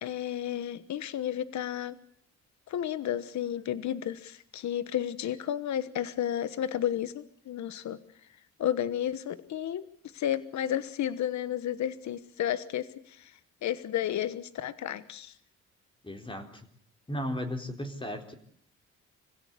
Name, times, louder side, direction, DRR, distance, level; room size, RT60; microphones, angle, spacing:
voice 1, 0.0-2.0 2.7-8.0 8.6-9.9 10.1-13.3 13.6-15.3, left 10 dB, 65° left, 14 dB, 1.3 m, -32 dB
voice 2, 16.0-16.7 17.1-18.3, equal, 15° left, 5 dB, 3.9 m, -35 dB
25.5 x 16.5 x 8.4 m, 0.64 s
cardioid pair, 90°, 30 cm